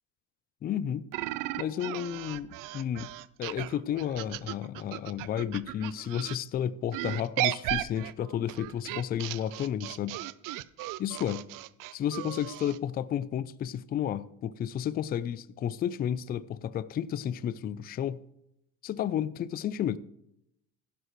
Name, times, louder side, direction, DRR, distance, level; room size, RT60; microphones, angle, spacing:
voice 1, 0.6-1.1 1.6-3.1 3.4-10.2 11.0-11.4 12.0-18.2 18.8-20.0, left 10 dB, 25° left, 0.4 m, -32 dB
sound 1, 1.1-6.4 6.9-12.8, right 16 dB, 50° right, 0.5 m, -36 dB
16.0 x 11.5 x 3.1 m
cardioid pair, 140°, 42 cm